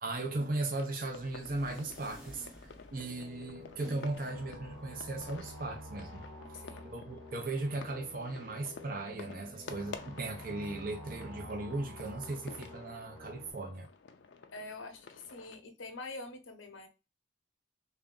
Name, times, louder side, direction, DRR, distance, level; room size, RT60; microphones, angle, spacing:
voice 1, 0.0-6.2 6.8-13.9, right 2 dB, 45° right, 0.7 m, -37 dB
sound 1, 0.7-15.6, left 5 dB, 70° left, 0.5 m, -52 dB
sound 2, 1.0-6.6, equal, 5° right, 0.7 m, -54 dB
sound 3, 2.9-13.5, left 1 dB, 85° right, 1.6 m, -49 dB
voice 2, 6.5-6.8 9.5-9.7 14.5-16.9, left 2 dB, 85° left, 0.8 m, -45 dB
3.5 x 2.7 x 3.7 m
head